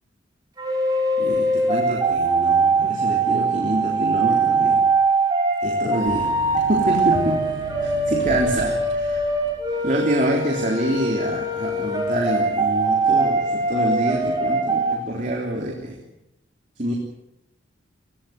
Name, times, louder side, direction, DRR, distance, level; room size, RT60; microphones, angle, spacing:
sound 1, 0.6-14.9, right 3 dB, 20° right, 6.2 m, -22 dB
voice 1, 1.2-4.8 5.6-6.3 6.7-7.4 7.8-9.3 9.8-16.0 16.8-16.9, right 1 dB, 40° right, -1 dB, 3.7 m, -26 dB
sound 2, 6.1-13.3 13.8-14.5, right 1 dB, 80° right, 4.2 m, -38 dB
23.0 x 17.5 x 9.5 m, 0.89 s
head